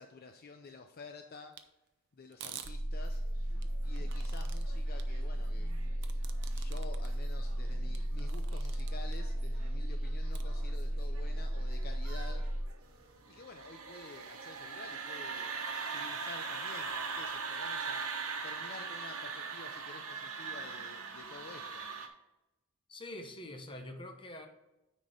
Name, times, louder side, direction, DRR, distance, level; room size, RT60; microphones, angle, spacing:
voice 1, 0.0-1.5 2.1-3.2 3.8-5.8 6.5-12.4 13.3-15.5 15.9-18.1 18.4-21.9, left 3 dB, 45° left, 5 dB, 0.6 m, -50 dB
sound 1, 1.5-1.6 2.3-2.7 3.6-4.6 5.0-5.1 6.0-7.1 7.5-7.6 7.9-9.2 10.3-10.4, right 9 dB, 55° right, 0.7 m, -48 dB
sound 2, 2.6-12.7, right 1 dB, 40° right, 1.1 m, -34 dB
sound 3, 3.2-22.1, right 5 dB, 85° right, 1.1 m, -42 dB
voice 2, 22.9-24.5, left 1 dB, 25° left, 4 dB, 1.0 m, -45 dB
9.5 x 4.2 x 5.1 m, 0.96 s
head